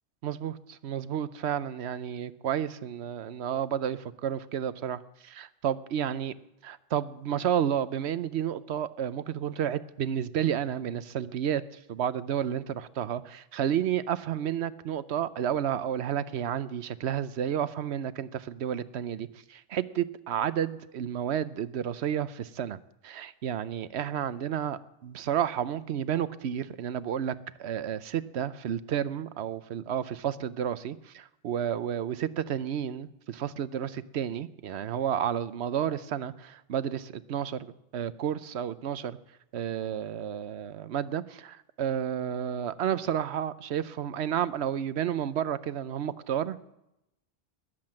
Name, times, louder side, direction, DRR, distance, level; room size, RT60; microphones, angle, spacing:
voice 1, 0.2-6.3 6.6-11.6 11.9-22.8 23.0-39.2 39.5-46.8, right 9 dB, 85° right, 16 dB, 1.0 m, -31 dB
20.5 x 7.8 x 7.6 m, 0.86 s
omnidirectional pair, 1.1 m